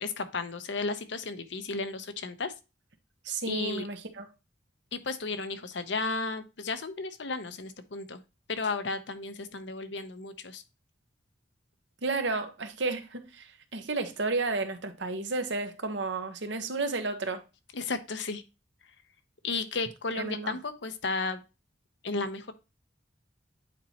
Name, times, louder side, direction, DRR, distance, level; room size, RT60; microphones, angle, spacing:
voice 1, 0.0-2.5 3.5-3.9 4.9-8.2 8.5-10.6 17.7-18.4 19.4-21.4 22.0-22.5, left 3 dB, 70° left, 0.8 m, -34 dB
voice 2, 3.2-4.3 12.0-17.4 20.1-20.6, right 3 dB, 70° right, 1.1 m, -32 dB
9.0 x 4.2 x 2.9 m
head